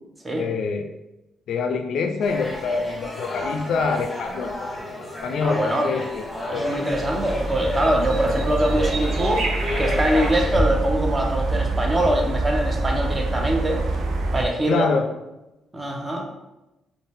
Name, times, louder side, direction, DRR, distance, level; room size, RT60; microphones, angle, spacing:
voice 1, 0.4-0.9 1.5-4.5 5.2-6.2 6.5-6.7 14.7-15.1, left 4 dB, 70° left, 5 dB, 0.3 m, -25 dB
sound 1, 2.2-10.5, left 1 dB, 15° left, 1.0 m, -32 dB
voice 2, 5.4-5.9 6.5-9.5 9.8-13.8 14.3-14.9 15.7-16.3, right 1 dB, 20° right, 1 dB, 0.6 m, -23 dB
sound 2, 6.9-14.5, right 2 dB, 65° right, 0.4 m, -25 dB
2.6 x 2.1 x 3.4 m, 0.97 s
cardioid pair, 90°, 0 cm